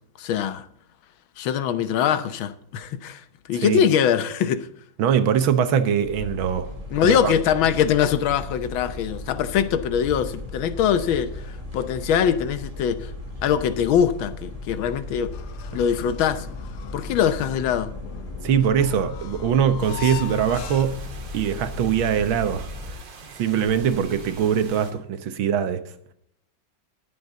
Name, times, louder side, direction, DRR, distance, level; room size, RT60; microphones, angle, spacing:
voice 1, 0.2-0.7 1.4-3.2 3.5-4.7 6.9-13.1 13.4-15.3 15.7-16.5 16.9-17.9, left 8 dB, 90° left, 1.7 m, -23 dB
voice 2, 3.5-3.8 5.0-6.7 7.0-7.3 18.4-21.0 21.3-23.0 23.4-25.8, right 8 dB, 90° right, 1.9 m, -22 dB
sound 1, 6.0-22.9, left 2 dB, 20° right, 2.0 m, -36 dB
sound 2, 15.3-21.2, left 13 dB, 65° left, 1.1 m, -40 dB
sound 3, 19.8-24.9, right 4 dB, 70° right, 2.3 m, -42 dB
19.5 x 7.4 x 3.9 m
omnidirectional pair, 2.1 m